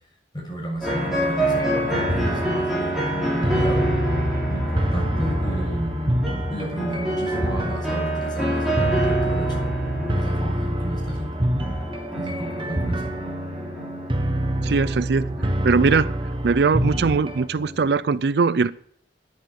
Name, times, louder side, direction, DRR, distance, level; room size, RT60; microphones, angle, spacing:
voice 1, 0.3-3.9 4.5-6.2 6.5-9.7 10.1-11.4 12.2-13.0, right 1 dB, 25° left, -2 dB, 7.3 m, -32 dB
sound 1, 0.8-17.8, equal, ahead, 6.2 m, -27 dB
sound 2, 1.5-17.5, right 1 dB, 30° right, 1.2 m, -27 dB
voice 2, 14.6-15.3 15.6-16.1 16.4-18.7, right 4 dB, 60° right, 17 dB, 0.4 m, -20 dB
12.5 x 10.5 x 6.4 m, 0.66 s
head